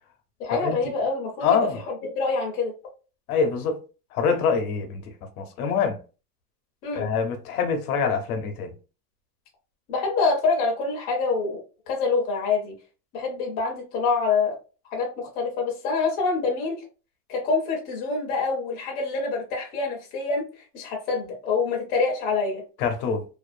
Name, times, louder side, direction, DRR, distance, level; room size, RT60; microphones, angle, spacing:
voice 1, 0.4-1.6 2.1-2.7 6.8-7.1 9.9-12.7 13.1-14.6 14.9-16.8 17.3-22.6, left 4 dB, 20° left, 0.4 m, -26 dB
voice 2, 1.4-1.8 3.3-3.8 4.1-6.0 6.9-8.7 22.8-23.3, left 6 dB, 75° left, 0.8 m, -25 dB
2.5 x 2.2 x 2.5 m
supercardioid pair, 170°, 44 cm